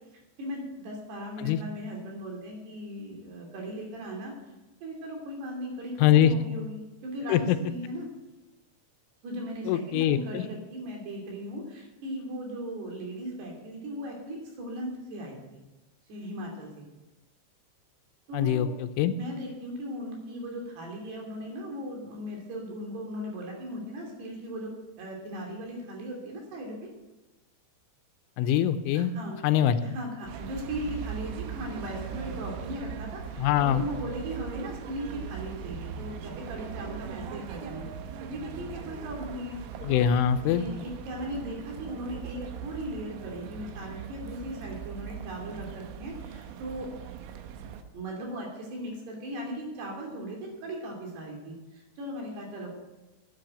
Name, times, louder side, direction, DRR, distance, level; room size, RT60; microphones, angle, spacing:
voice 1, 0.1-4.3 4.8-8.1 9.2-15.4 16.1-16.7 18.3-18.7 19.0-26.9 28.9-29.5 29.8-37.8 38.3-40.1 40.4-46.9 47.9-52.7, equal, 60° right, 0 dB, 4.8 m, -38 dB
voice 2, 6.0-6.3 7.3-7.6 9.7-10.5 18.3-19.1 28.4-29.1 29.4-29.8 33.4-33.8 39.8-40.6, left 10 dB, 85° left, 10 dB, 3.1 m, -23 dB
sound 1, 30.3-47.8, right 8 dB, 90° right, 3.6 m, -40 dB
10.5 x 10.0 x 8.9 m, 1.0 s
omnidirectional pair, 5.5 m